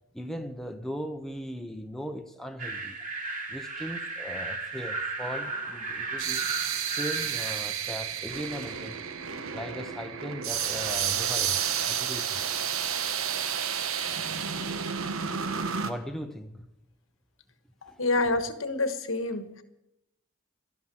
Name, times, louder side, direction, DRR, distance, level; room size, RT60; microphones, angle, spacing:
voice 1, 0.1-3.0 3.5-6.4 6.9-9.0 9.5-12.4 15.8-16.7 17.9-18.0, equal, ahead, 0.7 m, -38 dB
sound 1, 2.6-7.6, right 3 dB, 35° right, 3.1 m, -35 dB
sound 2, 5.3-15.9, right 8 dB, 80° right, 1.2 m, -31 dB
voice 2, 17.8-19.6, left 2 dB, 70° left, 1.4 m, -28 dB
13.0 x 11.5 x 9.0 m
head